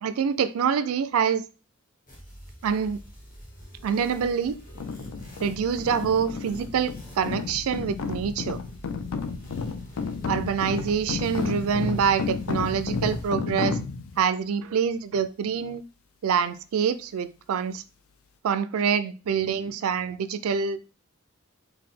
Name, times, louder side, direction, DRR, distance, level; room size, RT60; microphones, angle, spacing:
voice 1, 0.0-1.4 2.6-3.0 3.8-4.6 5.4-8.6 10.3-13.8 14.2-15.8 16.2-17.8 18.4-20.8, right 7 dB, 90° right, 0.4 m, -26 dB
sound 1, 2.1-13.3, equal, 40° left, 1.3 m, -45 dB
sound 2, 4.7-14.2, left 4 dB, 80° left, 0.4 m, -32 dB
4.7 x 2.2 x 3.7 m
head